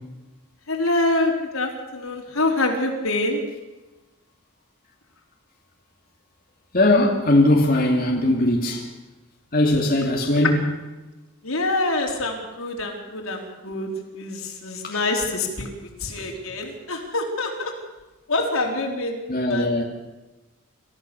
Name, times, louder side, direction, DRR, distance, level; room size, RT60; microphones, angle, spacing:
voice 1, 0.7-3.4 11.4-15.7 16.0-17.7 18.3-19.2 19.5-19.8, left 2 dB, 75° left, 1 dB, 4.4 m, -25 dB
voice 2, 6.7-8.9 9.5-10.6 19.3-19.8, left 1 dB, 40° left, -1 dB, 2.7 m, -19 dB
28.5 x 14.5 x 7.1 m, 1.1 s
head